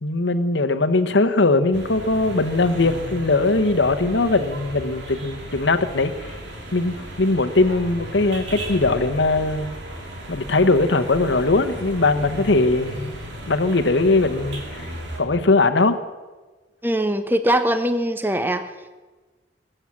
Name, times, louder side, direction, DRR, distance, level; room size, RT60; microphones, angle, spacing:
voice 1, 0.0-6.3 6.7-9.7 10.3-13.1 13.5-14.9 15.2-16.0, left 2 dB, 80° left, 10 dB, 1.0 m, -20 dB
sound 1, 1.7-15.2, right 1 dB, 80° right, 3.2 m, -35 dB
voice 2, 16.8-18.7, right 1 dB, 10° right, 9 dB, 0.8 m, -21 dB
21.0 x 7.9 x 7.5 m, 1.3 s
head